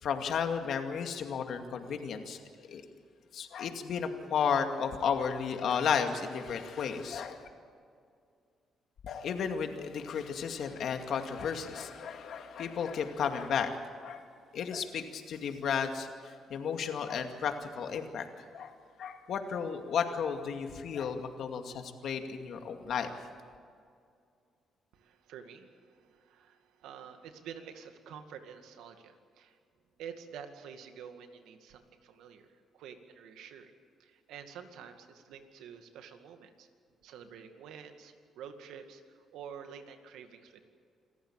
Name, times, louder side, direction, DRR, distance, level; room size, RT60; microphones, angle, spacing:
voice 1, 0.0-2.4 2.7-2.8 3.3-7.5 9.0-13.8 14.0-14.2 14.5-18.7 19.0-23.1, left 7 dB, 70° left, 5 dB, 2.3 m, -33 dB
voice 2, 24.9-29.6 30.0-33.7 34.0-36.7 37.0-40.6, right 7 dB, 85° right, 7 dB, 2.1 m, -49 dB
27.0 x 14.5 x 8.9 m, 2.2 s
cardioid pair, 90°, 0 cm